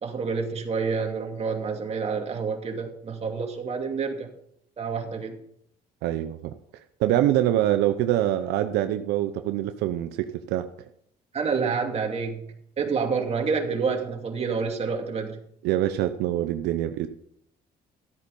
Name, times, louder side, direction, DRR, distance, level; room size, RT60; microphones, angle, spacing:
voice 1, 0.0-4.3 4.8-5.4 11.3-15.4, right 5 dB, 40° right, 2 dB, 2.5 m, -28 dB
voice 2, 6.0-6.5 7.0-10.7 15.6-17.1, right 13 dB, 90° right, 8 dB, 0.7 m, -24 dB
13.5 x 8.4 x 5.4 m, 0.70 s
cardioid pair, 110°, 17 cm